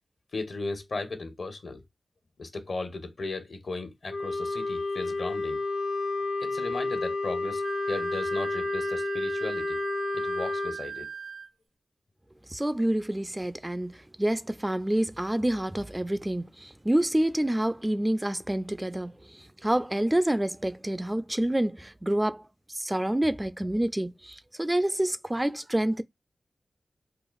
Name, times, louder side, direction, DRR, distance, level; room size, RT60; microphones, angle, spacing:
voice 1, 0.3-1.8 2.4-5.6 6.4-9.8 10.1-11.1, left 3 dB, 70° left, 1.0 m, -36 dB
Wind instrument woodwind instrument, 4.1-10.8, left 3 dB, 90° left, 0.5 m, -31 dB
Wind instrument woodwind instrument 2, 7.6-11.5, right 7 dB, 85° right, 0.9 m, -38 dB
voice 2, 12.5-22.4 22.7-26.0, right 1 dB, 15° right, 0.3 m, -28 dB
4.6 x 2.5 x 2.3 m
cardioid pair, 45°, 0 cm